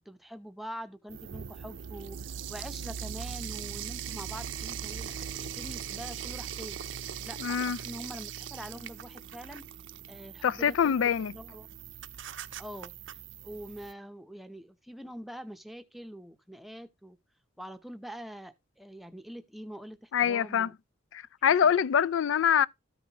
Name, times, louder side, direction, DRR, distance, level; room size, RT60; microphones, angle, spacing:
voice 1, 0.1-6.8 7.2-9.6 10.1-11.7 12.6-12.9 13.4-17.2 17.6-20.7, equal, ahead, 0.7 m, -44 dB
sound 1, 1.1-13.9, right 8 dB, 70° right, 0.6 m, -40 dB
voice 2, 7.4-7.8 10.4-11.3 20.1-20.7 21.1-22.7, left 8 dB, 85° left, 0.4 m, -25 dB
13.5 x 5.5 x 2.9 m
head